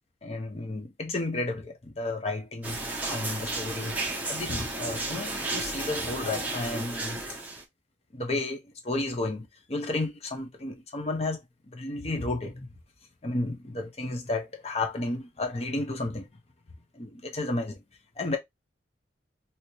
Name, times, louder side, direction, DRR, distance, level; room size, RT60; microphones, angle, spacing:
voice 1, 0.2-7.2 8.1-12.7 13.2-16.3 16.9-17.8 18.2-18.4, left 2 dB, 35° left, 0.7 m, -32 dB
sound 1, 2.6-7.6, right 2 dB, 10° right, 0.7 m, -33 dB
3.0 x 2.8 x 2.8 m
head